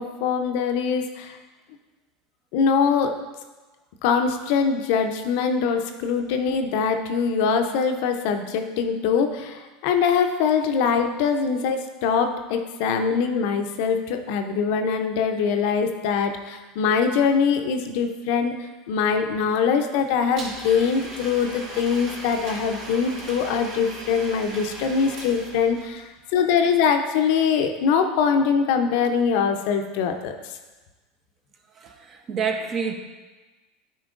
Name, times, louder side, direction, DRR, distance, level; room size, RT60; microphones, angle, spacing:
voice 1, 0.0-1.4 2.5-3.1 4.0-18.6 18.9-26.0 26.3-30.4, left 6 dB, 65° left, 6 dB, 0.5 m, -23 dB
Domestic sounds home sounds, 20.4-26.0, right 1 dB, 65° right, 1.6 m, -38 dB
voice 2, 31.7-32.9, right 6 dB, 40° right, 5 dB, 0.7 m, -28 dB
9.0 x 4.4 x 2.5 m, 1.2 s
hypercardioid pair, 90°, 0 cm